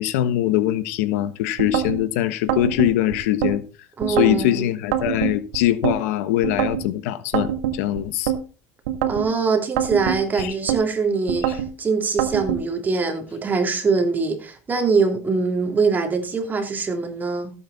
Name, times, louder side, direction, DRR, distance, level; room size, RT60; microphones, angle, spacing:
voice 1, 0.0-3.6 4.1-8.3 10.4-10.6 11.4-11.6, left 13 dB, 85° left, 1.3 m, -22 dB
sound 1, 1.6-2.0 2.5-3.5 4.0-4.4 4.9-6.0 6.4-6.8 7.3-8.4 8.9-9.3 9.8-10.8 11.3-11.7 12.2-12.6, right 11 dB, 90° right, 1.9 m, -24 dB
voice 2, 4.0-4.7 9.1-17.5, right 4 dB, 25° right, 3.0 m, -23 dB
15.0 x 8.5 x 4.1 m
supercardioid pair, 125°, 8 cm